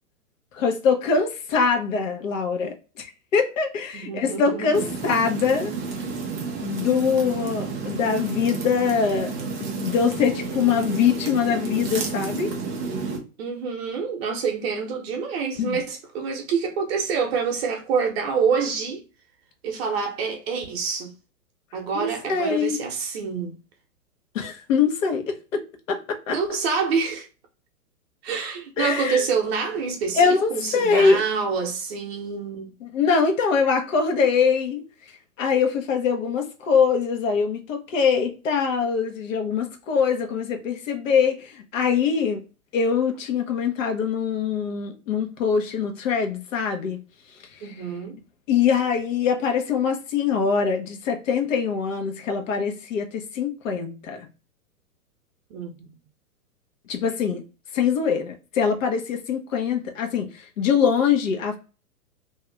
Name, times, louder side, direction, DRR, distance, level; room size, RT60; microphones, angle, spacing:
voice 1, 0.5-5.7 6.6-9.3 9.6-12.5 15.6-15.8 21.9-22.8 24.3-25.6 25.9-26.4 28.8-29.2 30.1-31.2 32.8-34.8 35.4-42.4 42.7-47.0 48.5-54.3 56.9-57.4 57.7-61.6, left 6 dB, 55° left, 1.1 m, -23 dB
voice 2, 3.9-4.9 13.4-19.0 19.6-21.1 21.7-23.6 26.3-27.3 28.2-32.7 47.6-48.2 55.5-55.9, right 5 dB, 45° right, 0.9 m, -27 dB
sound 1, 4.7-13.2, right 4 dB, 15° right, 0.4 m, -31 dB
2.7 x 2.5 x 3.3 m
hypercardioid pair, 120°, 45 cm